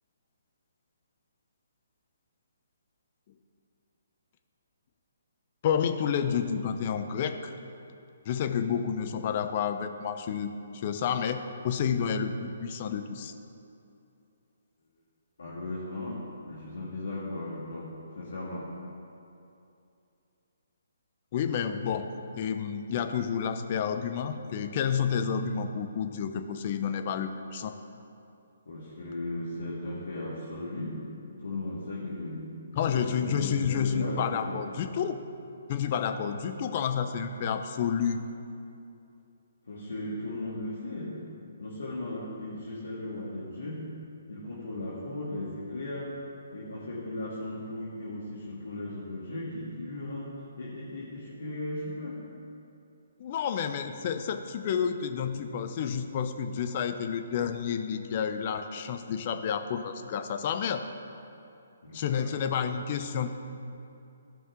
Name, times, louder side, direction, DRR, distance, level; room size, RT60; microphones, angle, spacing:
voice 1, 5.6-7.5 8.3-13.3 21.3-22.1 22.3-27.7 32.7-35.2 35.7-38.2 53.2-60.8 61.9-63.3, left 7 dB, 40° left, 7 dB, 0.6 m, -30 dB
voice 2, 15.4-18.7 28.6-31.1 31.4-34.6 39.7-44.0 44.3-46.2 46.5-52.2 61.8-62.3, left 1 dB, 70° left, -6 dB, 1.7 m, -37 dB
14.5 x 5.4 x 3.7 m, 2.7 s
figure-of-eight pair, 135°, 0 cm